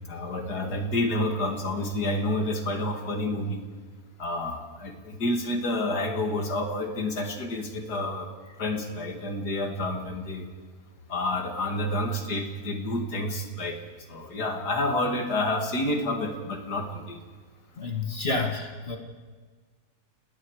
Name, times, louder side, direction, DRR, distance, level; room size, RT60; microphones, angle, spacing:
voice 1, 0.0-3.6 4.2-10.5 11.1-13.8 14.1-17.2 18.3-18.4, left 1 dB, 85° left, 4 dB, 2.7 m, -29 dB
voice 2, 17.8-19.0, left 3 dB, 40° left, 3 dB, 1.8 m, -29 dB
30.0 x 19.5 x 4.8 m, 1.5 s
omnidirectional pair, 1.7 m